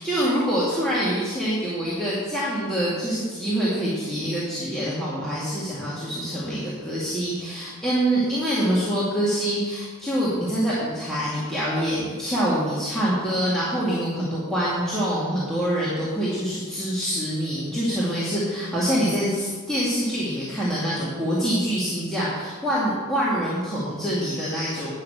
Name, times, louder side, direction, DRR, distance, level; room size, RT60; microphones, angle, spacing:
voice 1, 0.0-24.9, equal, 5° left, -10 dB, 2.1 m, -25 dB
9.4 x 6.6 x 7.8 m, 1.4 s
head